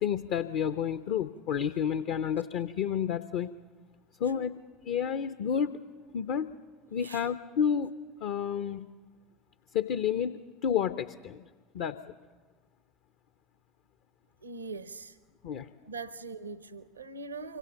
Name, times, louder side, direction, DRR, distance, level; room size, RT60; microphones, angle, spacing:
voice 1, 0.0-3.5 4.2-4.5 4.9-5.8 6.1-6.5 6.9-7.9 8.2-8.9 9.7-11.5 11.7-12.1 15.4-15.7, left 8 dB, 55° left, 0.7 m, -30 dB
voice 2, 14.4-15.2 15.8-17.6, right 4 dB, 80° right, 0.7 m, -41 dB
25.5 x 25.0 x 7.3 m
figure-of-eight pair, 70°, 0 cm